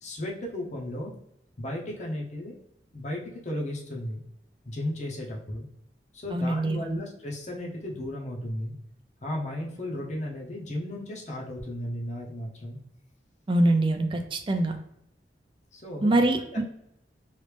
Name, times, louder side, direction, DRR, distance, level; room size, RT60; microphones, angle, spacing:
voice 1, 0.0-1.1 1.6-2.6 2.9-4.2 4.7-5.6 6.1-8.8 9.2-12.8 15.7-16.6, left 1 dB, 40° left, -2 dB, 0.8 m, -35 dB
voice 2, 6.3-7.0 13.5-14.8 16.0-16.6, right 1 dB, 30° right, 5 dB, 0.4 m, -24 dB
3.2 x 2.6 x 3.3 m, 0.78 s
head